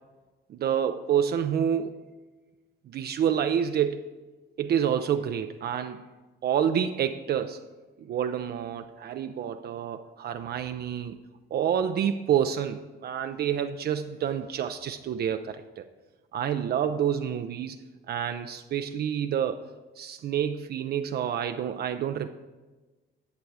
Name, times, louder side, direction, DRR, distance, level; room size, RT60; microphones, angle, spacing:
voice 1, 0.5-2.0 2.9-4.1 4.6-6.1 6.4-7.6 8.0-11.2 11.5-15.9 16.3-17.8 18.1-19.6 20.0-22.3, right 9 dB, 55° right, 8 dB, 0.5 m, -28 dB
10.5 x 7.0 x 4.7 m, 1.2 s
cardioid pair, 115°, 20 cm